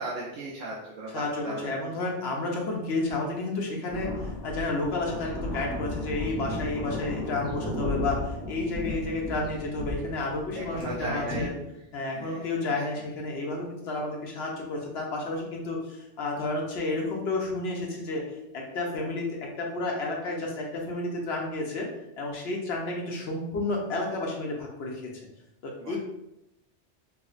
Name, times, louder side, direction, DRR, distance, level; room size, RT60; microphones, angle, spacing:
voice 1, 0.0-1.7 10.5-11.5 12.1-12.6 25.8-26.0, right 2 dB, 90° right, -5 dB, 1.0 m, -36 dB
voice 2, 1.1-11.5 11.9-21.9 22.2-25.0 25.6-26.0, left 2 dB, 65° left, -1 dB, 0.9 m, -31 dB
sound 1, 3.9-11.5, left 2 dB, 5° right, 0.5 m, -34 dB
4.6 x 2.1 x 2.4 m, 0.86 s
omnidirectional pair, 1.3 m